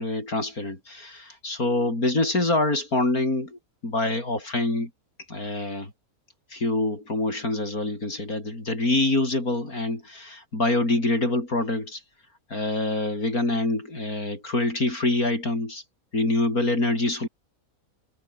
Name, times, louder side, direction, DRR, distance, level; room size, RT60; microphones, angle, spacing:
voice 1, 0.0-4.9 5.3-5.9 6.5-12.0 12.5-15.8 16.1-17.3, left 2 dB, 85° left, 6.9 m, -25 dB
omnidirectional pair, 1.5 m